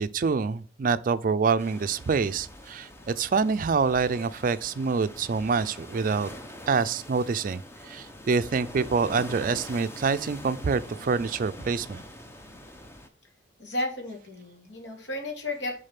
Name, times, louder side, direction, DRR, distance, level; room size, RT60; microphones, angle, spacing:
voice 1, 0.0-6.3 6.7-7.6 7.9-12.0, right 5 dB, 50° right, 0.4 m, -26 dB
sound 1, 1.6-13.1, left 1 dB, 15° left, 0.7 m, -44 dB
voice 2, 13.6-15.8, left 1 dB, 85° left, 2.1 m, -33 dB
6.6 x 3.8 x 5.8 m
head